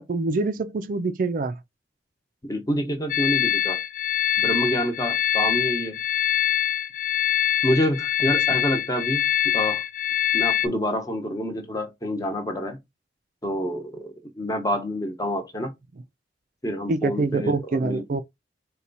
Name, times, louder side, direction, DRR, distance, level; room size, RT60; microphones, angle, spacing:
voice 1, 0.0-1.6 16.9-18.2, right 3 dB, 45° right, 0.4 m, -25 dB
voice 2, 2.4-3.8 4.4-6.0 7.6-9.3 9.5-9.8 10.3-12.8 13.4-15.7 16.6-18.2, equal, 20° left, 0.8 m, -27 dB
sound 1, 3.1-10.7, left 11 dB, 45° left, 0.4 m, -24 dB
4.2 x 2.3 x 3.9 m
head